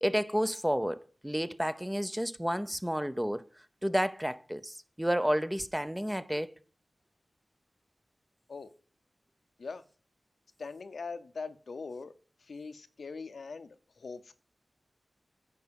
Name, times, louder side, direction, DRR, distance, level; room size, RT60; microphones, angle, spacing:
voice 1, 0.0-3.4 3.8-6.5, equal, 5° right, 0.6 m, -31 dB
voice 2, 10.6-12.1 12.4-14.3, left 4 dB, 75° left, 0.7 m, -42 dB
9.8 x 4.8 x 6.9 m
cardioid pair, 55°, 0 cm